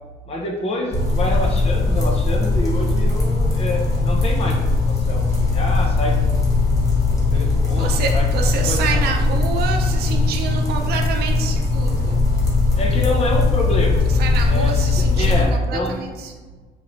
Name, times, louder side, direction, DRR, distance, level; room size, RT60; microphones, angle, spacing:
voice 1, 0.3-6.4 7.1-8.3 8.7-9.3 12.7-14.0 14.5-16.0, left 1 dB, 35° left, 1 dB, 0.7 m, -27 dB
sound 1, 0.9-15.4, left 3 dB, 20° left, 1.2 m, -19 dB
voice 2, 7.3-12.3 14.0-16.3, right 5 dB, 70° right, 3 dB, 0.6 m, -27 dB
4.5 x 3.2 x 2.6 m, 1.4 s
cardioid pair, 110°, 17 cm